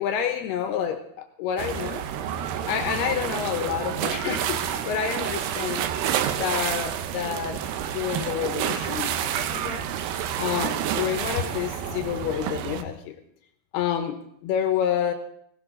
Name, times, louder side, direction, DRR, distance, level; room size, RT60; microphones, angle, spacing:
voice 1, 0.0-2.0 2.7-5.9 6.4-7.7 7.9-9.8 10.4-13.2 13.7-15.1, left 9 dB, 75° left, 7 dB, 2.8 m, -28 dB
sound 1, 1.6-12.8, right 10 dB, 80° right, 3.0 m, -29 dB
18.0 x 17.5 x 3.8 m, 0.67 s
omnidirectional pair, 4.9 m